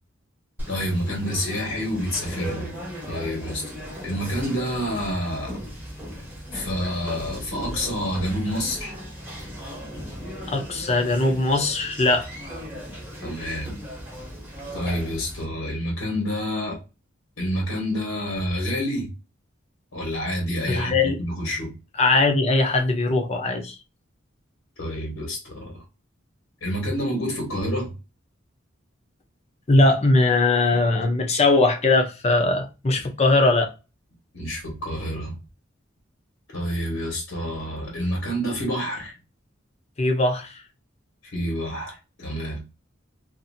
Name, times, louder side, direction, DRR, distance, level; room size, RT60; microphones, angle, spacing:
Conversation, 0.6-15.4, equal, 10° right, 1.0 m, -37 dB
voice 1, 0.7-2.7 3.1-3.6 4.0-5.6 6.5-8.9 13.2-13.7 14.7-16.8 17.4-19.1 19.9-21.7 24.8-25.8 26.6-27.9 34.3-35.4 36.5-39.1 41.3-42.6, equal, 90° left, 1.4 m, -28 dB
voice 2, 10.5-12.3 20.7-21.2 22.0-23.8 29.7-33.7 40.0-40.6, left 2 dB, 35° left, 0.6 m, -20 dB
2.7 x 2.6 x 2.6 m
head